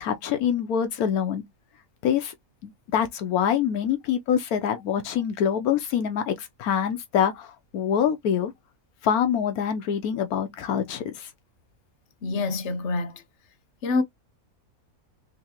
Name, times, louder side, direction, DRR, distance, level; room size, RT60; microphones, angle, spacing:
voice 1, 0.0-1.4 2.0-2.3 2.6-8.5 9.0-11.3, left 8 dB, 80° left, 1.2 m, -25 dB
voice 2, 12.2-13.2 13.8-14.0, left 3 dB, 55° left, 1.1 m, -26 dB
3.7 x 3.0 x 2.8 m
omnidirectional pair, 1.6 m